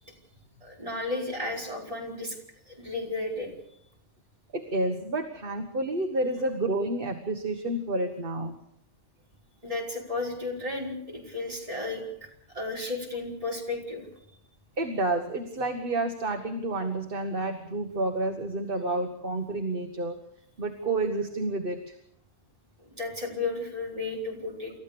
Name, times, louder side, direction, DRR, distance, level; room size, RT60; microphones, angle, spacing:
voice 1, 0.6-2.4 2.7-3.5 9.6-12.0 12.5-14.0 22.9-24.7, left 2 dB, 30° right, -2 dB, 5.2 m, -33 dB
voice 2, 4.5-8.6 14.8-20.2 20.6-21.9, right 2 dB, 50° right, 6 dB, 1.6 m, -29 dB
29.0 x 14.0 x 6.9 m, 0.75 s
omnidirectional pair, 1.2 m